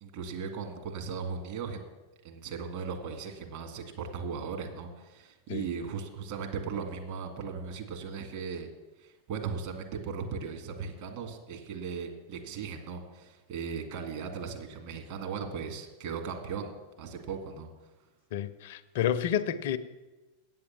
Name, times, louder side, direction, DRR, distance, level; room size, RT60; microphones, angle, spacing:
voice 1, 0.0-1.8 2.2-8.7 9.0-17.7, right 5 dB, 50° right, 1.9 m, -37 dB
voice 2, 18.3-19.8, left 9 dB, 55° left, 0.5 m, -30 dB
8.5 x 7.9 x 7.2 m
figure-of-eight pair, 90°, 0 cm